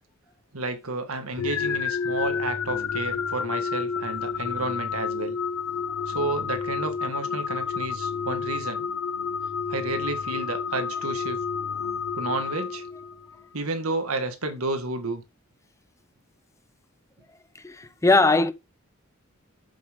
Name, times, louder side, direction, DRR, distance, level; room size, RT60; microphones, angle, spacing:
voice 1, 0.5-5.4 6.1-8.9 9.7-11.4 12.2-12.8 13.5-15.2, right 2 dB, 90° right, 1.8 m, -31 dB
sound 1, 1.4-13.3, left 6 dB, 75° left, 0.6 m, -30 dB
voice 2, 17.6-18.5, left 3 dB, 15° left, 0.6 m, -20 dB
7.7 x 7.4 x 3.6 m
head